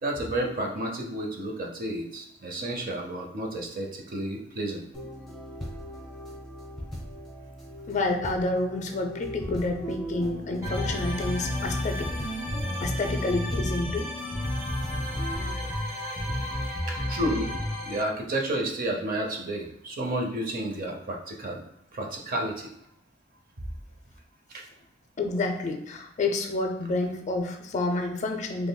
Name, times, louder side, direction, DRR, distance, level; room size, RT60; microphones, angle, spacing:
voice 1, 0.0-4.8 17.1-17.5 17.8-21.6 21.9-22.7 24.5-24.7, right 1 dB, 50° right, 2 dB, 0.6 m, -31 dB
sound 1, 4.9-15.5, left 1 dB, 5° left, 0.9 m, -39 dB
voice 2, 7.9-12.1 12.8-14.1 25.2-28.7, left 2 dB, 40° left, 5 dB, 0.4 m, -29 dB
sound 2, 10.6-18.0, left 1 dB, 15° right, 1.2 m, -31 dB
3.6 x 3.1 x 2.2 m, 0.77 s
head